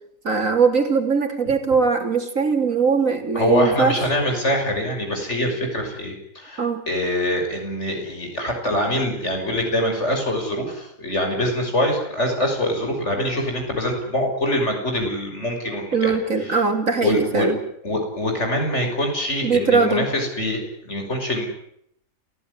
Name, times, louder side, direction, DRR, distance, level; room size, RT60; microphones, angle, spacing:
voice 1, 0.2-4.0 6.6-6.8 15.9-17.6 19.4-20.1, right 4 dB, 70° right, 5 dB, 3.6 m, -20 dB
voice 2, 3.3-16.1 16.4-16.6 17.0-17.5 17.8-21.5, left 1 dB, 55° left, 3 dB, 6.5 m, -24 dB
28.5 x 16.0 x 9.7 m, 0.74 s
omnidirectional pair, 1.5 m